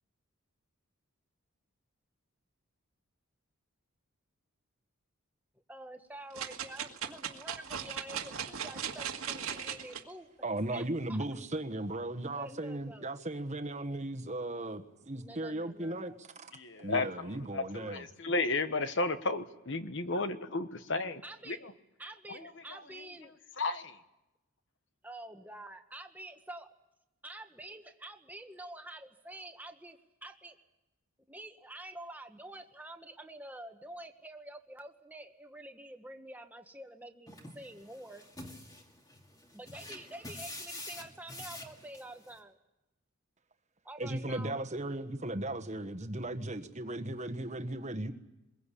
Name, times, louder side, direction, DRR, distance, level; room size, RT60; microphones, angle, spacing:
voice 1, 5.7-10.3 10.7-10.8 11.1-11.3 12.2-13.1 15.2-16.1 21.2-21.6 22.0-23.3 25.0-26.7 27.2-30.6 31.3-38.2 39.5-42.6 43.8-44.5, right 1 dB, 10° right, 5 dB, 1.5 m, -48 dB
sound 1, 6.3-10.0 10.6-10.7, right 8 dB, 80° right, 2.0 m, -38 dB
voice 2, 10.4-16.5 16.8-18.0 44.0-48.1, right 1 dB, 35° right, 7 dB, 1.4 m, -36 dB
voice 3, 16.5-21.2 21.5-21.6 22.3-22.8 23.6-24.0, left 3 dB, 55° left, 10 dB, 1.2 m, -33 dB
sound 2, 37.3-42.4, left 1 dB, 15° left, 2.4 m, -47 dB
25.5 x 22.0 x 8.5 m, 0.97 s
head